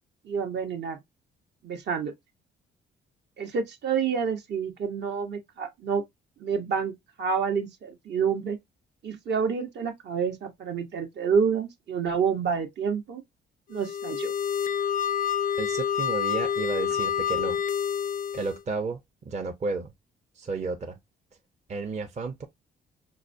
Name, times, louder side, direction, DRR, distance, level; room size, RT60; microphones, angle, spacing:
voice 1, 0.2-1.0 1.6-2.1 3.4-6.0 6.4-6.9 7.2-8.6 9.0-13.2 13.7-14.3, right 6 dB, 60° right, 1.0 m, -28 dB
sound 1, 13.7-18.6, left 8 dB, 45° left, 0.4 m, -28 dB
voice 2, 15.6-17.6 18.3-19.0 19.2-19.9 20.4-21.0 21.7-22.4, right 4 dB, 35° right, 0.7 m, -32 dB
5.8 x 2.1 x 2.6 m
cardioid pair, 90°, 20 cm